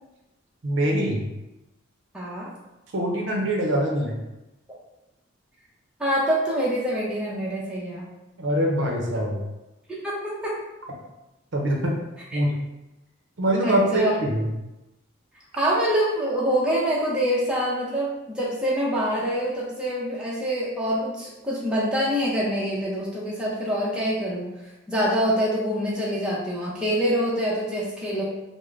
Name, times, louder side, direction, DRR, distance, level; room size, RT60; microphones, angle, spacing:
voice 1, 0.6-1.3 2.9-4.2 8.4-9.4 11.5-12.0 12.3-12.5 13.4-14.5, right 1 dB, 65° right, 0 dB, 0.6 m, -23 dB
voice 2, 2.1-2.5 6.0-8.1 9.9-10.6 12.3-12.4 13.6-14.1 15.5-24.5 24.9-28.2, equal, 5° right, -6 dB, 0.5 m, -25 dB
3.6 x 2.1 x 3.2 m, 0.97 s
head